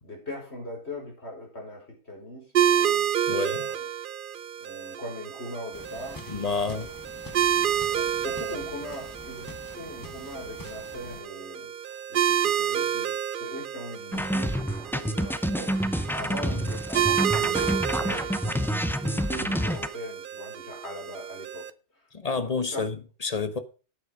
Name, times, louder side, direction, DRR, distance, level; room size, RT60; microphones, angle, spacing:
voice 1, 0.0-3.1 3.4-3.9 4.6-6.2 6.6-6.9 7.9-15.8 16.1-18.7 19.0-21.7 22.7-22.8, left 1 dB, 70° left, 5.3 m, -40 dB
sound 1, 2.5-21.7, right 9 dB, 55° right, 0.7 m, -30 dB
voice 2, 3.3-3.7 6.3-6.9 22.1-23.6, left 4 dB, 35° left, 1.3 m, -29 dB
sound 2, 5.7-11.2, left 2 dB, 20° left, 1.5 m, -45 dB
sound 3, 14.1-19.9, equal, ahead, 0.6 m, -28 dB
10.5 x 8.7 x 5.1 m
omnidirectional pair, 1.2 m